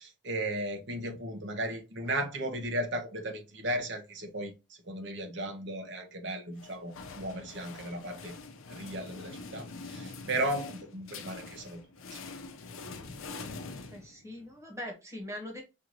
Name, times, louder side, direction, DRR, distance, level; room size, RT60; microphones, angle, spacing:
voice 1, 0.0-4.5 4.9-8.4 8.7-11.8, right 1 dB, 60° right, 0.9 m, -35 dB
sound 1, 6.6-14.5, left 3 dB, 85° left, 0.7 m, -45 dB
voice 2, 13.9-15.6, left 1 dB, 15° right, 1.2 m, -41 dB
5.6 x 2.6 x 2.9 m
head